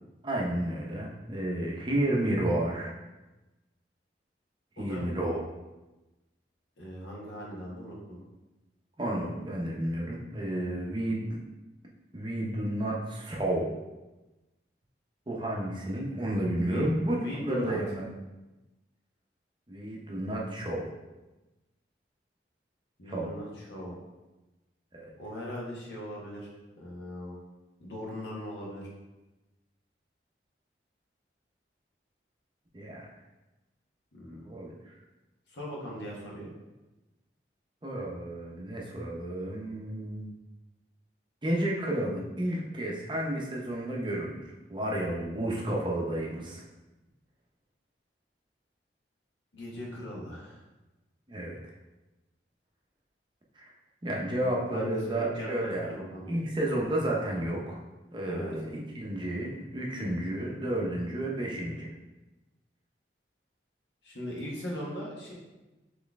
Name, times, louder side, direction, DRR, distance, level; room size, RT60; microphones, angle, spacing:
voice 1, 0.2-2.9 4.8-5.4 9.0-11.4 12.1-13.7 15.3-17.2 17.4-18.0 19.7-20.9 23.1-23.3 24.9-25.1 32.7-33.1 34.3-34.9 37.8-40.3 41.4-46.6 51.3-51.6 53.6-53.7 54.0-57.8 58.1-61.9, right 1 dB, 25° right, -2 dB, 0.6 m, -31 dB
voice 2, 4.8-5.1 6.8-8.2 16.6-16.9 17.1-17.8 23.0-23.9 25.2-26.5 26.8-27.4 27.8-28.9 34.1-34.5 35.5-36.5 49.5-50.6 54.7-56.4 58.2-58.5 64.0-65.3, equal, 85° left, -3 dB, 1.2 m, -39 dB
4.1 x 3.1 x 3.5 m, 1.1 s
head